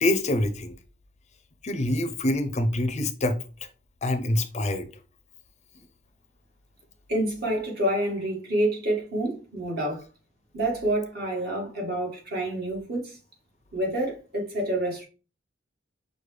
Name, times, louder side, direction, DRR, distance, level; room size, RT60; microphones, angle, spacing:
voice 1, 0.0-0.7 1.6-3.4 4.0-4.9, left 1 dB, 35° left, 0.5 m, -25 dB
voice 2, 7.1-10.0 10.5-13.2 13.7-15.0, right 1 dB, 55° right, 1.8 m, -28 dB
6.0 x 2.2 x 3.3 m
head